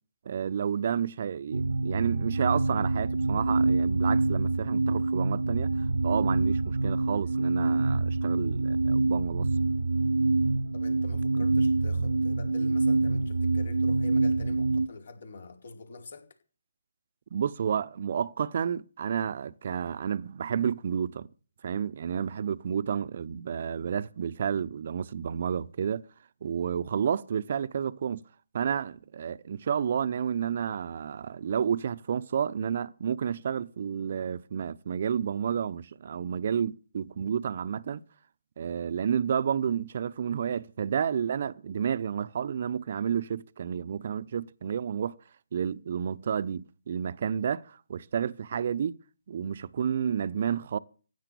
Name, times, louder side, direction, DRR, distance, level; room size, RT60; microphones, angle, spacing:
voice 1, 0.2-9.5 17.3-21.3 21.6-26.1 26.4-28.2 28.5-38.0 38.6-45.1 45.5-49.0 49.3-50.8, right 7 dB, 50° right, 0.8 m, -30 dB
sound 1, 1.5-14.9, right 3 dB, 85° right, 0.9 m, -26 dB
voice 2, 10.7-16.3, left 3 dB, 60° left, 4.7 m, -46 dB
16.0 x 10.0 x 6.9 m
figure-of-eight pair, 150°, 0 cm